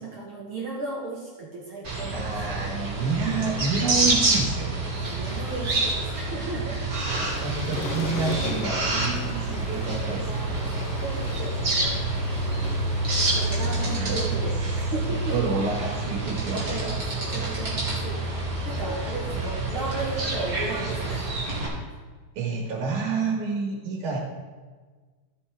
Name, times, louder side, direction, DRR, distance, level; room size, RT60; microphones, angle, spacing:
voice 1, 0.0-2.8 4.9-6.8 7.3-7.5 9.1-9.5 10.2-12.1 13.3-15.4 16.5-18.4 18.6-21.4, right 3 dB, 55° right, -2 dB, 1.6 m, -36 dB
sound 1, 1.8-21.7, right 2 dB, 30° right, 2.2 m, -27 dB
voice 2, 2.1-4.9 7.2-10.7 13.3-14.4 15.3-16.9 18.6-18.7 22.4-24.2, right 4 dB, 80° right, -2 dB, 2.9 m, -29 dB
sound 2, 7.0-14.0, left 6 dB, 90° left, 1.3 m, -39 dB
14.0 x 6.9 x 3.5 m, 1.4 s
omnidirectional pair, 3.4 m